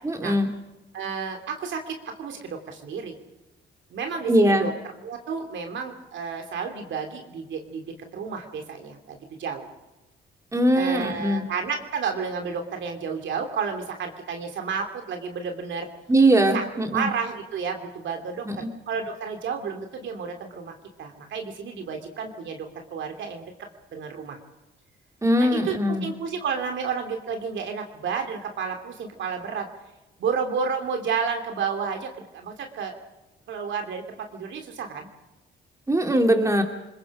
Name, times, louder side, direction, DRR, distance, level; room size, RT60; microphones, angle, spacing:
voice 1, 0.0-0.5 4.3-4.7 10.5-11.4 16.1-17.1 18.4-18.7 25.2-26.1 35.9-36.6, right 1 dB, 15° right, 3 dB, 2.9 m, -21 dB
voice 2, 0.9-3.1 3.9-4.7 5.0-7.8 8.1-9.7 10.7-15.9 16.5-16.6 16.9-20.7 21.0-23.5 23.9-24.4 25.4-25.7 26.0-29.6 30.2-33.0 33.5-35.1, right 6 dB, 70° right, 4 dB, 3.1 m, -31 dB
28.5 x 21.0 x 5.1 m, 0.98 s
cardioid pair, 90°, 20 cm